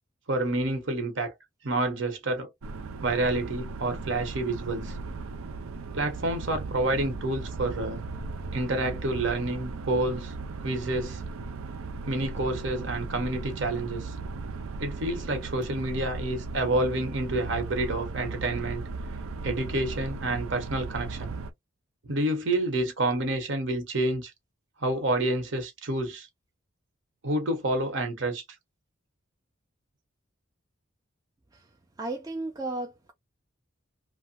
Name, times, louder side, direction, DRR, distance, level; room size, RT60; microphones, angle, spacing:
voice 1, 0.3-1.3 1.6-2.5 3.0-5.0 5.9-8.0 8.5-10.3 10.6-11.2 12.1-14.1 14.8-18.8 19.4-21.3 22.1-24.3 24.8-26.3 27.2-28.4, right 2 dB, 65° right, 1.0 m, -28 dB
sound 1, 2.6-21.5, right 3 dB, 90° right, 0.5 m, -37 dB
voice 2, 32.0-33.1, right 2 dB, 20° right, 0.4 m, -34 dB
2.9 x 2.1 x 2.8 m
head